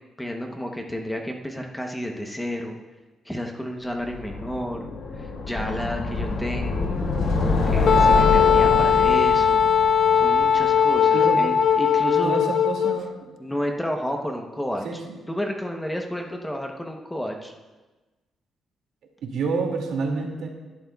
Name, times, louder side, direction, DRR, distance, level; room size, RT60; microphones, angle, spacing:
voice 1, 0.2-2.8 3.2-4.9 5.2-6.9 7.4-9.7 10.1-12.3 13.4-14.9 15.3-17.5, equal, 5° left, 2 dB, 0.9 m, -31 dB
sound 1, 4.1-11.1, left 3 dB, 75° left, 2.4 m, -26 dB
Wind instrument woodwind instrument, 7.9-13.0, left 7 dB, 45° left, 0.4 m, -19 dB
voice 2, 12.2-13.3 14.8-15.0 19.2-20.5, right 4 dB, 80° right, 1 dB, 2.3 m, -28 dB
18.5 x 11.5 x 2.3 m, 1.2 s
cardioid pair, 165°, 0 cm